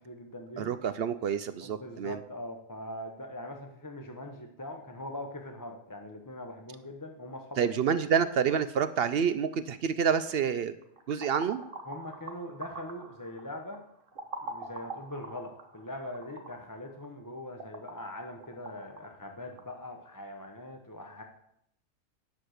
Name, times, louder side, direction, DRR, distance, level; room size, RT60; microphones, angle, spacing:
voice 1, 0.0-0.7 1.6-8.2 11.9-13.8 14.4-21.2, left 1 dB, 20° left, 3 dB, 0.7 m, -42 dB
voice 2, 0.6-2.2 7.6-10.7 11.1-11.6, right 7 dB, 65° right, 12 dB, 0.6 m, -28 dB
sound 1, 10.8-19.8, right 3 dB, 45° right, 1.2 m, -45 dB
10.5 x 6.3 x 6.4 m, 0.75 s
omnidirectional pair, 1.4 m